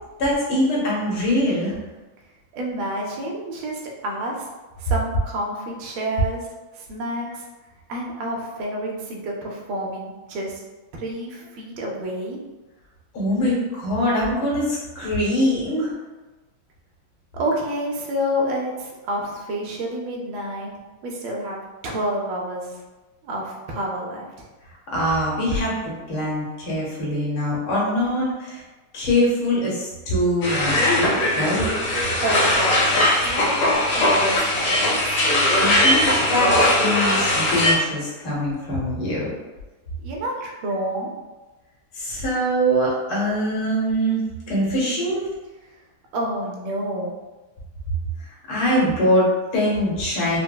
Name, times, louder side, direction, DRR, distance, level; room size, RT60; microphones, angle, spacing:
voice 1, 0.2-1.7 13.1-15.9 24.9-28.6 28.9-31.7 35.6-39.3 41.9-44.2 44.5-45.3 48.5-50.4, equal, 85° left, -6 dB, 1.9 m, -23 dB
voice 2, 2.5-4.5 4.8-6.5 6.7-7.4 7.9-10.6 10.9-12.4 17.3-20.7 21.0-21.6 21.8-22.8 23.2-24.5 32.2-32.9 33.2-33.5 33.9-35.2 40.0-41.1 46.1-47.2, right 1 dB, 75° right, -1 dB, 1.4 m, -29 dB
sound 1, 30.4-37.7, left 1 dB, 65° left, 1.1 m, -20 dB
4.3 x 2.0 x 2.2 m, 1.2 s
omnidirectional pair, 2.2 m